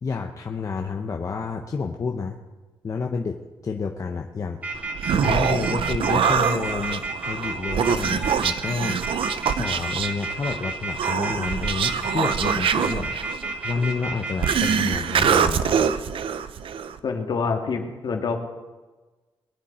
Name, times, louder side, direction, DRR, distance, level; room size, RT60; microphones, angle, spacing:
voice 1, 0.0-2.4 2.8-4.6 5.2-9.0 9.4-13.1 13.6-15.9, left 5 dB, 35° left, 3 dB, 0.8 m, -29 dB
sound 1, 4.6-14.7, right 3 dB, 15° right, 2.3 m, -31 dB
Human voice, 4.7-17.0, right 7 dB, 75° right, 0.8 m, -24 dB
voice 2, 17.0-18.4, left 5 dB, 55° left, 4 dB, 1.9 m, -26 dB
21.5 x 10.5 x 4.3 m, 1.2 s
wide cardioid pair, 160°, 9 cm